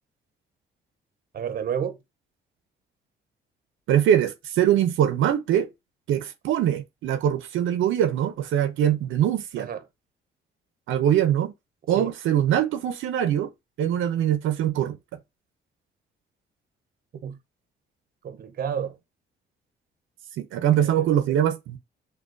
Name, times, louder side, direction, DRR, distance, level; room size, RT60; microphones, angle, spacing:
voice 1, 1.3-2.0 9.6-9.8 11.9-12.1 17.2-17.4 18.2-19.0 20.8-21.1, right 8 dB, 50° right, 0.7 m, -31 dB
voice 2, 3.9-5.7 6.1-9.7 10.9-11.5 11.9-13.5 13.8-15.0 20.4-21.8, right 10 dB, 80° right, 0.6 m, -23 dB
6.1 x 2.3 x 2.5 m
cardioid pair, 90°, 20 cm